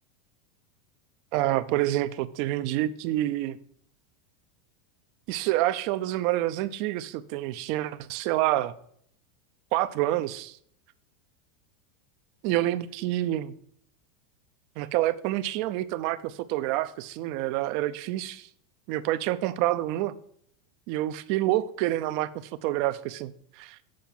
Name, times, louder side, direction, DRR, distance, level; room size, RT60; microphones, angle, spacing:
voice 1, 1.3-3.6 5.3-8.7 9.7-10.6 12.4-13.5 14.8-18.5 18.9-20.1 20.9-22.3 22.6-23.3 23.6-23.8, right 15 dB, 55° right, 0.5 m, -27 dB
7.6 x 4.7 x 7.1 m
supercardioid pair, 140°, 0 cm